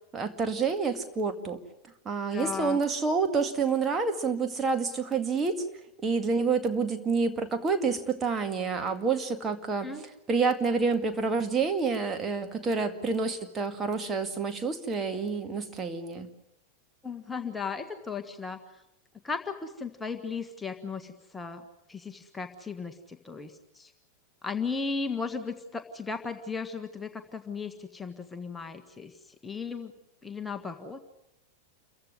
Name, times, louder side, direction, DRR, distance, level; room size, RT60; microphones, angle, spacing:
voice 1, 0.1-1.6 2.1-5.6 6.0-9.9 10.3-16.3, right 4 dB, 20° right, 6 dB, 2.1 m, -28 dB
voice 2, 2.3-2.8 9.8-10.1 17.0-18.8 19.2-21.6 21.9-23.9 24.4-29.9 30.2-31.0, left 5 dB, 10° left, 6 dB, 1.6 m, -36 dB
28.5 x 15.5 x 9.8 m, 0.89 s
figure-of-eight pair, 90°, 0 cm